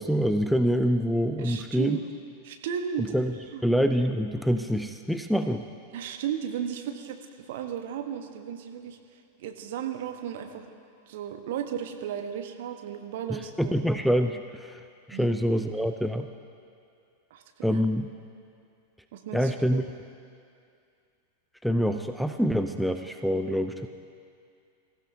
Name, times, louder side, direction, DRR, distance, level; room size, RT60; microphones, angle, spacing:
voice 1, 0.0-2.0 3.0-3.3 3.6-5.7 13.3-14.8 15.1-16.3 17.6-18.1 19.3-19.9 21.6-23.9, equal, ahead, 6 dB, 0.5 m, -26 dB
voice 2, 1.4-2.1 2.4-3.1 3.5-3.7 5.9-7.2 7.5-9.0 9.4-10.7 11.1-13.8 15.1-15.3 17.3-17.4 17.7-17.8 19.1-19.8, right 9 dB, 55° right, 5 dB, 1.2 m, -34 dB
24.5 x 15.5 x 2.8 m, 2.3 s
figure-of-eight pair, 90°, 0 cm